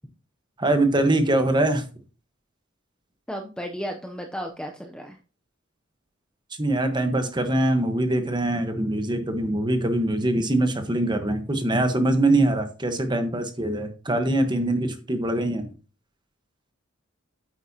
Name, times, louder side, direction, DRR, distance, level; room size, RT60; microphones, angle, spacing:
voice 1, 0.6-1.8 6.6-15.7, right 1 dB, 20° right, 7 dB, 1.1 m, -23 dB
voice 2, 3.3-5.2, equal, 5° left, 3 dB, 0.6 m, -34 dB
9.0 x 8.5 x 2.8 m, 0.35 s
head